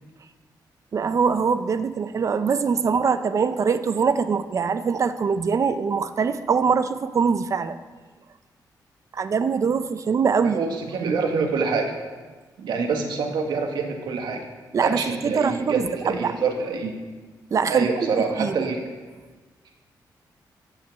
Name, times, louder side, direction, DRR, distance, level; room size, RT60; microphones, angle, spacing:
voice 1, 0.9-7.8 9.1-10.6 14.7-16.3 17.5-18.1 18.4-18.7, right 5 dB, 45° right, 11 dB, 0.6 m, -23 dB
voice 2, 10.5-11.9 12.6-14.4 14.8-16.9 17.7-18.8, right 4 dB, 85° right, 3 dB, 1.8 m, -26 dB
13.5 x 5.8 x 7.7 m, 1.3 s
wide cardioid pair, 130°, 7 cm